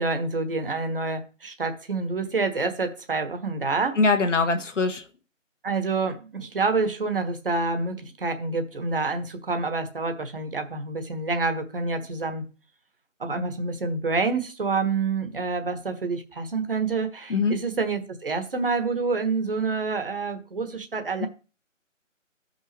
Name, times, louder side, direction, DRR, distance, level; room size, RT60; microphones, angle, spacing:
voice 1, 0.0-4.0 5.6-12.5 13.2-21.3, right 4 dB, 45° right, 1.3 m, -27 dB
voice 2, 4.0-5.0 17.3-17.6 21.2-21.3, left 3 dB, 65° left, 1.3 m, -22 dB
14.0 x 5.5 x 3.2 m
figure-of-eight pair, 170°, 39 cm